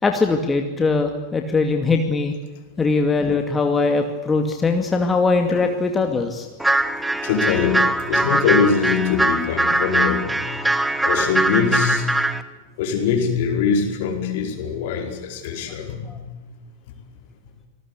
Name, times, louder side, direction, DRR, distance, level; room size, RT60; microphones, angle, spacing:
voice 1, 0.0-2.3 2.8-6.5, left 3 dB, 15° left, 4 dB, 2.4 m, -21 dB
sound 1, 6.6-12.4, right 2 dB, 5° right, 1.5 m, -21 dB
voice 2, 7.2-12.1 12.8-16.3, left 6 dB, 50° left, 4 dB, 5.0 m, -23 dB
27.5 x 20.0 x 8.4 m, 1.1 s
figure-of-eight pair, 90°, 0 cm